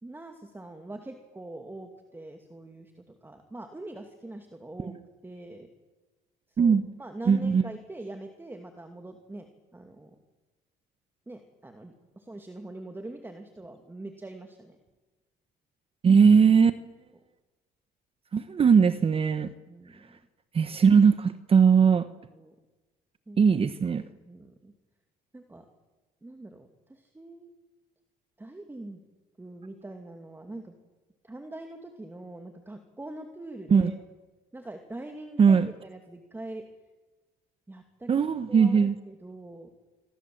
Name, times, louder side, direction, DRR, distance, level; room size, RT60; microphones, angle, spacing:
voice 1, 0.0-5.0 5.2-5.7 6.6-9.5 9.7-10.1 11.3-14.8 19.7-20.1 22.3-22.5 23.3-23.4 24.3-24.7 25.3-25.6 26.2-27.5 28.4-29.0 29.4-30.7 31.2-34.0 34.5-35.6 35.8-36.6 37.7-38.1 38.5-39.7, right 2 dB, 15° right, 4 dB, 2.5 m, -43 dB
voice 2, 7.3-7.6 16.0-16.8 18.3-19.5 20.5-22.1 23.4-24.0 33.7-33.9 35.4-35.7 38.1-38.9, right 6 dB, 35° right, 11 dB, 1.1 m, -20 dB
27.5 x 24.0 x 7.9 m, 1.2 s
cardioid pair, 110°, 17 cm